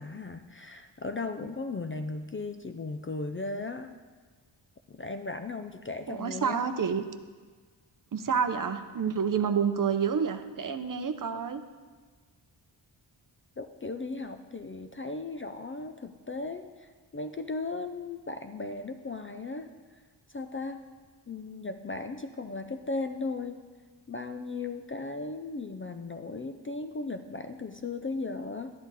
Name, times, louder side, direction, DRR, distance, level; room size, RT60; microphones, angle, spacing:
voice 1, 0.0-4.0 4.9-6.6 13.6-19.7 20.3-20.8 21.3-23.6 24.1-28.7, left 3 dB, 30° left, 7 dB, 0.4 m, -36 dB
voice 2, 6.1-7.0 8.1-11.6, right 6 dB, 45° right, 9 dB, 0.6 m, -28 dB
12.5 x 10.5 x 4.0 m, 1.5 s
wide cardioid pair, 160°, 46 cm